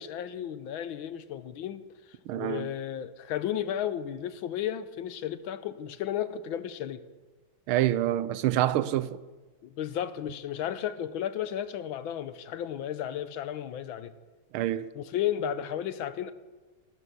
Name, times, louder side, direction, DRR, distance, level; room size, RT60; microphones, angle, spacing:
voice 1, 0.0-1.8 2.3-7.0 9.6-14.1 14.9-16.3, left 10 dB, 75° left, 1.6 m, -33 dB
voice 2, 2.3-2.7 7.7-9.2 14.5-14.9, right 13 dB, 80° right, 1.5 m, -27 dB
15.0 x 12.5 x 6.9 m
omnidirectional pair, 2.3 m